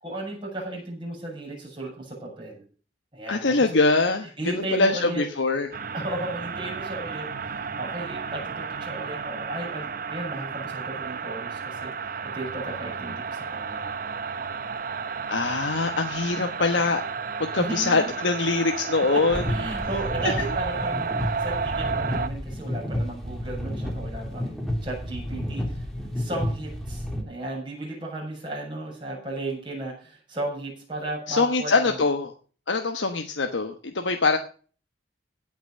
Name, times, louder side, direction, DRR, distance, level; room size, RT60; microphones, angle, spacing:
voice 1, 0.0-2.6 3.1-3.7 4.4-5.2 5.9-11.9 12.2-13.9 17.6-18.1 19.1-19.2 19.5-25.8 26.2-32.0, right 1 dB, 25° right, -2 dB, 7.1 m, -35 dB
voice 2, 3.3-4.3 4.7-5.7 15.3-17.0 17.4-19.4 31.3-32.3 32.7-34.4, left 3 dB, 85° left, 5 dB, 1.2 m, -23 dB
sound 1, 5.7-22.3, right 5 dB, 50° right, 0.7 m, -32 dB
sound 2, 19.3-27.2, equal, ahead, 2.8 m, -31 dB
17.0 x 6.1 x 6.4 m, 0.40 s
head